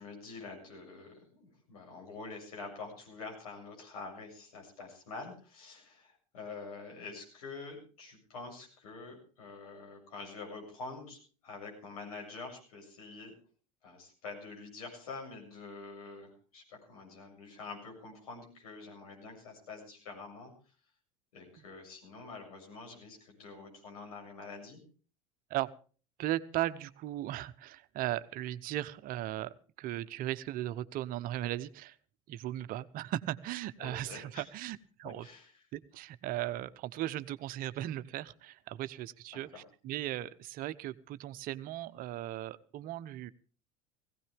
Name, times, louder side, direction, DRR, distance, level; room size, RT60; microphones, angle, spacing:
voice 1, 0.0-11.2 11.4-13.3 13.8-20.5 21.3-24.8 33.8-34.4 35.0-35.5 39.3-39.6, left 4 dB, 85° left, 0 dB, 7.2 m, -46 dB
voice 2, 26.2-32.0 32.3-35.3 35.7-43.3, right 14 dB, 50° right, 14 dB, 0.8 m, -37 dB
18.0 x 17.0 x 3.5 m, 0.39 s
hypercardioid pair, 80°, 18 cm